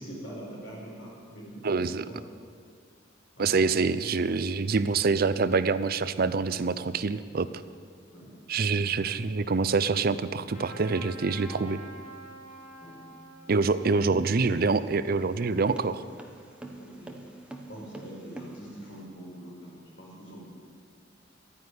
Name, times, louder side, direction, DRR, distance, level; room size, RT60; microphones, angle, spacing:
voice 1, 0.0-2.2 3.3-3.5 8.1-8.3 8.8-8.9 12.8-13.0 13.8-14.2 16.8-17.2 17.7-20.5, right 1 dB, 80° left, -3 dB, 5.0 m, -44 dB
voice 2, 1.6-2.1 3.4-7.5 8.5-11.8 13.5-16.0, right 4 dB, 50° right, 14 dB, 0.5 m, -26 dB
Trumpet, 10.5-15.6, right 1 dB, 45° left, 2.9 m, -48 dB
sound 1, 14.5-19.0, right 1 dB, 5° right, 1.1 m, -46 dB
12.0 x 9.7 x 9.7 m, 2.1 s
head